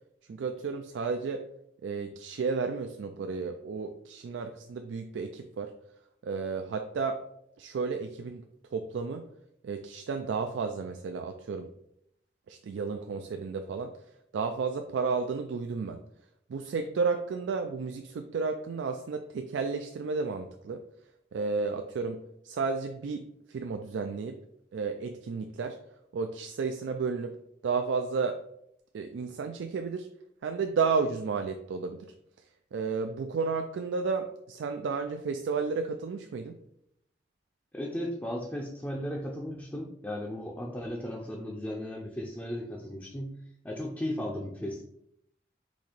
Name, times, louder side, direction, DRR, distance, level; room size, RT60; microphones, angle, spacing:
voice 1, 0.3-1.5 1.8-5.7 6.2-7.2 7.6-8.4 8.7-9.3 9.6-11.7 12.5-13.9 14.3-16.0 16.5-20.8 21.3-24.4 24.7-25.8 26.1-27.3 27.6-28.4 28.9-30.1 30.4-32.1 32.7-36.6, right 4 dB, 85° right, 6 dB, 0.3 m, -32 dB
voice 2, 37.7-43.3 43.6-44.8, left 1 dB, 10° left, -2 dB, 0.4 m, -36 dB
4.2 x 2.8 x 4.4 m, 0.75 s
head